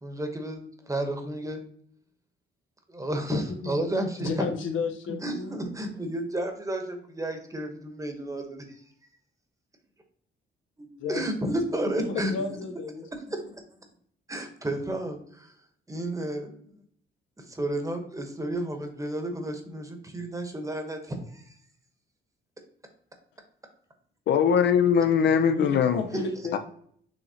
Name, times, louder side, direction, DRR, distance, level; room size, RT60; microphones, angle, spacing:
voice 1, 0.0-1.6 2.9-4.5 5.2-8.6 10.8-12.3 13.1-13.6 14.3-15.5 15.9-16.5 17.4-21.5 26.1-26.2, right 1 dB, 15° right, 5 dB, 1.0 m, -32 dB
voice 2, 3.3-3.7 4.2-5.7 11.0-11.5 12.0-13.1 25.5-26.6, left 4 dB, 80° left, 5 dB, 0.8 m, -33 dB
voice 3, 24.3-26.0 26.5-26.6, left 7 dB, 60° left, 8 dB, 0.4 m, -21 dB
6.2 x 3.1 x 2.8 m, 0.63 s
cardioid pair, 90°, 20 cm